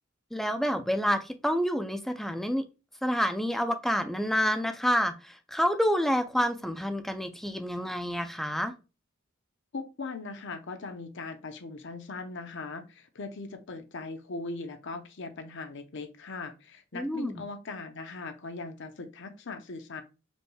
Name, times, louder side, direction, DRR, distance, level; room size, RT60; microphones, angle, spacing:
voice 1, 0.3-2.7 3.0-8.7 16.9-17.4, equal, ahead, 7 dB, 0.4 m, -28 dB
voice 2, 9.7-20.0, left 3 dB, 65° left, 7 dB, 0.7 m, -39 dB
5.2 x 3.1 x 2.2 m, 0.30 s
head